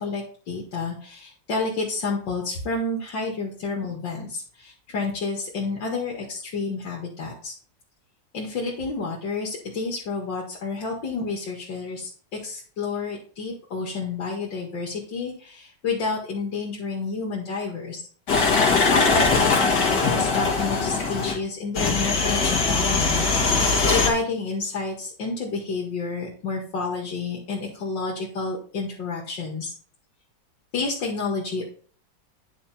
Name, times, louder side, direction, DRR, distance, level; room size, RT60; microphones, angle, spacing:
voice 1, 0.0-7.5 8.3-18.0 18.9-29.7 30.7-31.6, left 4 dB, 90° left, -2 dB, 2.7 m, -30 dB
sound 1, 18.3-21.3 21.8-24.1, left 4 dB, 65° left, 2.5 m, -21 dB
9.7 x 6.2 x 4.3 m, 0.44 s
omnidirectional pair, 2.0 m